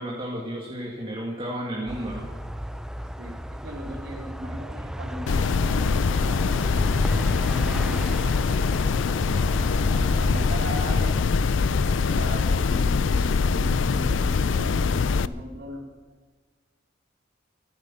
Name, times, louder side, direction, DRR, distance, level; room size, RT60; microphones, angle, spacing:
voice 1, 0.0-2.3, right 1 dB, 30° right, -2 dB, 2.0 m, -32 dB
sound 1, 1.9-11.2, equal, 5° right, 0.4 m, -34 dB
voice 2, 3.2-6.9 7.3-8.2 9.9-11.2 11.5-15.9, equal, 60° right, 1 dB, 3.1 m, -38 dB
sound 2, 5.3-15.3, left 5 dB, 75° left, 0.4 m, -23 dB
14.5 x 14.5 x 5.7 m, 1.4 s
head